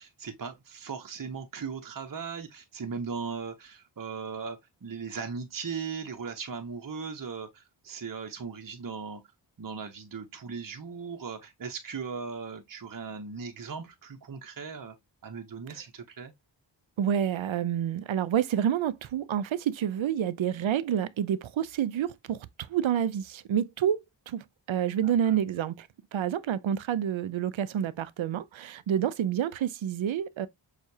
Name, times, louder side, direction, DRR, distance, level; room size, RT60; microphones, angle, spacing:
voice 1, 0.0-9.2 9.6-14.9 15.2-16.3 25.0-25.4, right 5 dB, 40° right, 0.8 m, -38 dB
voice 2, 17.0-30.5, right 9 dB, 70° right, 0.6 m, -28 dB
6.3 x 2.4 x 2.7 m
cardioid pair, 45°, 49 cm